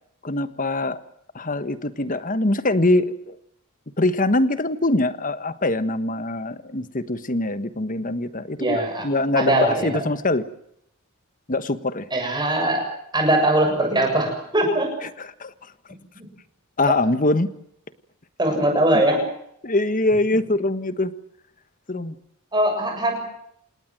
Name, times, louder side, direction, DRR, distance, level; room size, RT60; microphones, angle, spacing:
voice 1, 0.2-1.0 1.3-3.4 4.0-10.4 11.5-12.1 15.0-15.5 16.8-17.5 19.6-21.1 21.9-22.1, left 2 dB, 35° left, 13 dB, 1.4 m, -23 dB
voice 2, 8.6-9.1 9.4-10.1 12.1-12.9 13.1-14.9 16.2-16.3 18.4-19.2 22.5-23.3, right 1 dB, 20° right, 3 dB, 7.3 m, -21 dB
28.5 x 19.0 x 7.7 m, 0.75 s
head